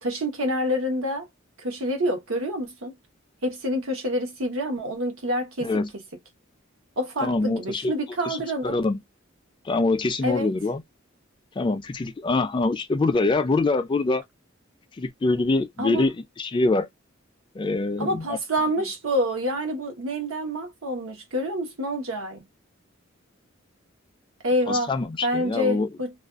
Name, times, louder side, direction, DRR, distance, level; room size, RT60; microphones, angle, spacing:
voice 1, 0.0-1.3 1.6-2.9 3.4-5.7 7.0-8.8 10.2-10.5 15.8-16.1 18.0-22.4 24.4-25.0 25.2-26.1, equal, 80° right, 0.9 m, -27 dB
voice 2, 7.2-7.9 8.2-8.4 8.6-9.0 9.7-10.8 11.6-14.2 15.0-16.1 16.4-16.9 17.6-18.4 24.7-25.9, left 3 dB, 25° left, 0.3 m, -24 dB
2.4 x 2.2 x 2.3 m
head